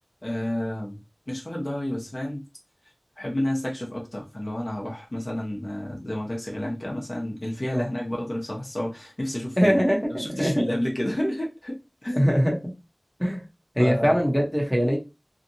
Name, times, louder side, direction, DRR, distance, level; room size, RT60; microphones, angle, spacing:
voice 1, 0.2-1.0 1.3-2.4 3.2-9.8 10.2-12.3 13.8-14.1, left 1 dB, 45° left, 0.9 m, -30 dB
voice 2, 9.6-10.6 12.1-12.6 13.2-13.4 13.8-15.0, equal, 5° left, 1.0 m, -22 dB
2.8 x 2.4 x 2.7 m
wide cardioid pair, 50°, 0 cm